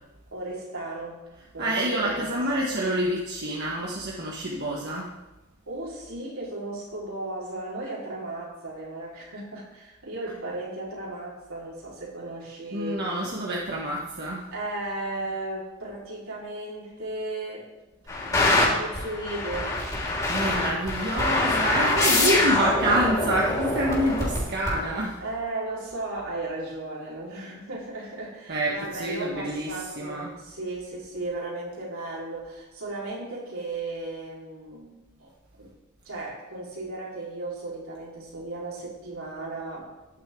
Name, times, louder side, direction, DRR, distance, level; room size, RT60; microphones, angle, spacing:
voice 1, 0.3-1.2 1.5-2.6 5.7-13.0 14.5-17.7 18.2-19.7 21.8-22.5 22.8-23.0 25.2-34.9 35.2-35.3 35.6-35.7 36.0-39.9, right 2 dB, 75° right, -5 dB, 4.7 m, -35 dB
voice 2, 1.4-5.1 12.7-14.5 19.9-25.2 28.5-30.3, right 1 dB, 50° right, -3 dB, 1.6 m, -27 dB
sound 1, 18.1-25.0, left 2 dB, 20° left, 4.3 m, -25 dB
14.5 x 11.0 x 3.9 m, 1.1 s
head